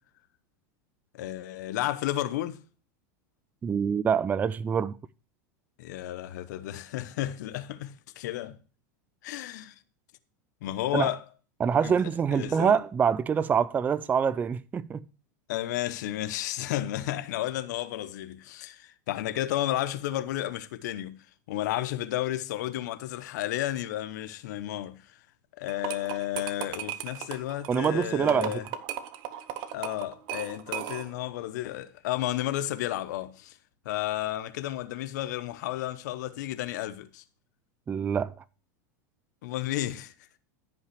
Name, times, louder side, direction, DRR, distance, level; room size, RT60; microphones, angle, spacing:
voice 1, 1.1-2.6 5.8-8.6 9.2-9.8 10.6-11.2 11.8-11.9 12.3-12.8 15.5-21.2 21.5-25.2 25.6-28.7 29.7-33.6 33.8-37.2 39.4-40.1, left 14 dB, 70° left, 0.8 m, -32 dB
voice 2, 3.6-5.0 10.9-11.1 11.6-15.0 27.7-28.5 37.9-38.3, right 7 dB, 15° right, 0.3 m, -25 dB
sound 1, 25.7-31.3, right 11 dB, 50° right, 1.0 m, -37 dB
14.5 x 5.5 x 3.2 m
hypercardioid pair, 115°, 10 cm